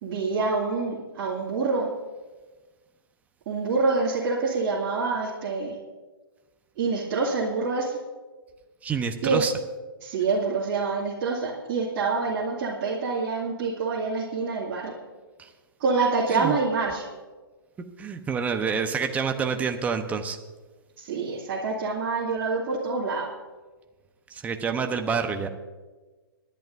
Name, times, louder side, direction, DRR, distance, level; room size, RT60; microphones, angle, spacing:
voice 1, 0.0-1.9 3.5-5.8 6.8-8.0 9.2-9.5 10.0-14.9 15.8-17.1 21.0-23.3, right 4 dB, 40° right, -6 dB, 2.4 m, -26 dB
voice 2, 8.8-9.5 15.4-15.5 16.3-16.6 18.0-20.4 24.3-25.5, right 6 dB, 10° right, 6 dB, 0.9 m, -27 dB
26.5 x 11.0 x 2.6 m, 1.3 s
hypercardioid pair, 130°, 12 cm